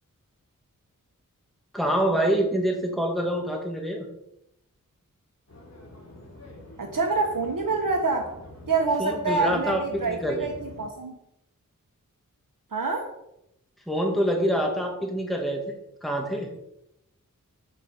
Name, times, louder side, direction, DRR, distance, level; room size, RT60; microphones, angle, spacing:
voice 1, 1.7-4.1 9.0-10.5 13.9-15.6 16.0-16.5, equal, ahead, 1 dB, 1.8 m, -26 dB
sound 1, 5.5-10.9, left 1 dB, 50° left, 2.4 m, -46 dB
voice 2, 6.8-8.3 8.7-11.2 12.7-13.1, right 3 dB, 75° right, 2 dB, 1.1 m, -26 dB
6.7 x 5.2 x 6.6 m, 0.81 s
wide cardioid pair, 70°, 34 cm